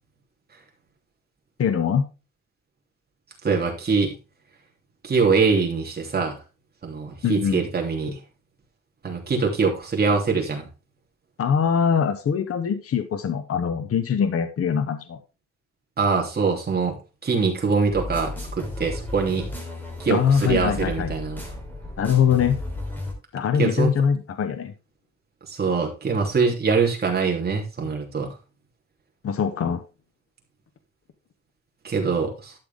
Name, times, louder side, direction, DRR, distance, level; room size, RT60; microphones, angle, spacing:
voice 1, 1.6-2.1 7.2-7.6 11.4-15.2 20.1-21.1 22.0-22.6 23.3-24.7 29.2-29.8, left 7 dB, 45° left, 9 dB, 1.0 m, -22 dB
voice 2, 3.4-4.2 5.0-6.4 6.8-8.2 9.0-10.7 16.0-17.0 17.2-19.5 20.0-21.4 23.6-23.9 25.5-28.3 31.8-32.5, right 4 dB, 30° right, 0 dB, 3.0 m, -23 dB
sound 1, 17.9-23.1, left 1 dB, 5° left, 3.4 m, -34 dB
12.0 x 6.9 x 3.5 m, 0.29 s
wide cardioid pair, 170°, 31 cm